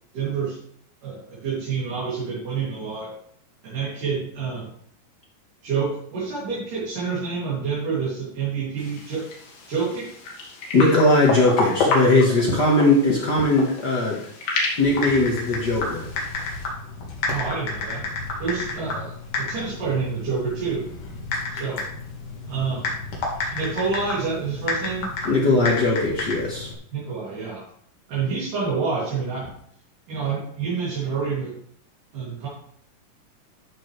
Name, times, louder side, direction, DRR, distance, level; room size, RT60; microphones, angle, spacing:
voice 1, 0.1-0.6 1.0-3.2 3.6-4.7 5.6-9.3 9.7-10.1 17.3-18.1 18.4-20.9 21.5-21.8 22.5-22.9 23.5-25.1 26.9-27.6 28.1-29.5 30.1-31.6 32.1-32.5, right 5 dB, 70° right, -9 dB, 4.4 m, -28 dB
sound 1, 8.8-16.7, left 3 dB, 80° left, 3.6 m, -29 dB
voice 2, 10.7-14.2 14.8-16.1 25.2-26.7, left 2 dB, 45° left, -3 dB, 1.4 m, -19 dB
Typing, 14.8-26.7, left 3 dB, 65° left, 3.3 m, -31 dB
12.5 x 6.6 x 3.3 m, 0.65 s
omnidirectional pair, 3.9 m